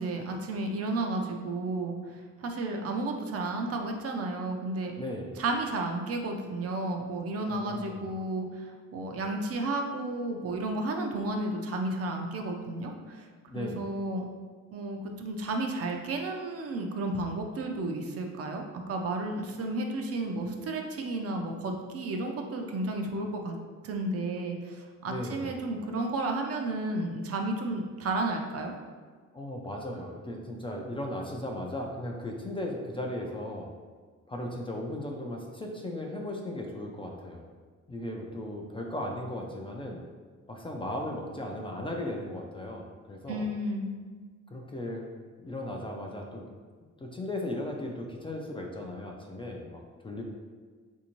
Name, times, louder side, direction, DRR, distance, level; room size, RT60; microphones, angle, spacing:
voice 1, 0.0-4.9 5.4-13.3 13.5-14.2 14.7-18.6 18.9-23.5 23.8-28.7 43.3-43.9, right 2 dB, 50° right, 3 dB, 0.5 m, -32 dB
voice 2, 5.0-5.4 7.5-8.0 13.5-13.8 25.1-25.6 29.3-33.7 34.3-37.4 37.9-40.0 40.5-43.5 44.5-45.1 45.4-46.4 47.0-50.2, left 1 dB, 20° left, 0 dB, 0.4 m, -36 dB
3.3 x 2.7 x 2.9 m, 1.5 s
cardioid pair, 90°, 30 cm